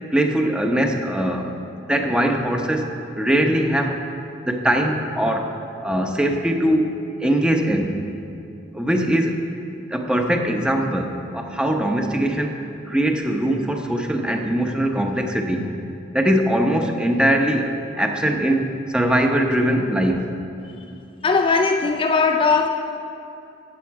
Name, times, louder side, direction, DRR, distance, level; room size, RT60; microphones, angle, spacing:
voice 1, 0.1-1.5 1.9-2.9 3.2-4.0 4.5-5.5 5.8-6.9 7.2-8.1 8.7-9.4 9.9-12.6 12.9-15.7 16.1-17.7 17.9-20.3, right 1 dB, 5° right, 3 dB, 0.8 m, -21 dB
voice 2, 21.2-22.7, left 4 dB, 25° left, 4 dB, 0.4 m, -18 dB
16.0 x 7.6 x 4.7 m, 2.7 s
head